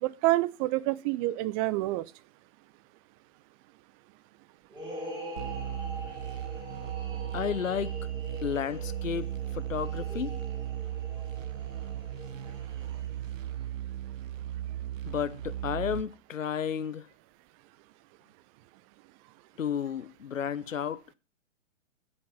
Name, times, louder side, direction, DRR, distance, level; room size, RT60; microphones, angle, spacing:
voice 1, 0.0-2.1, right 18 dB, 30° right, 0.7 m, -27 dB
sound 1, 4.7-13.3, equal, 10° right, 4.4 m, -43 dB
sound 2, 5.4-16.0, right 12 dB, 85° right, 0.9 m, -36 dB
voice 2, 7.3-8.0 8.4-10.4 15.1-17.1 19.6-21.1, left 8 dB, 80° left, 1.0 m, -32 dB
16.0 x 6.8 x 5.7 m
hypercardioid pair, 125°, 38 cm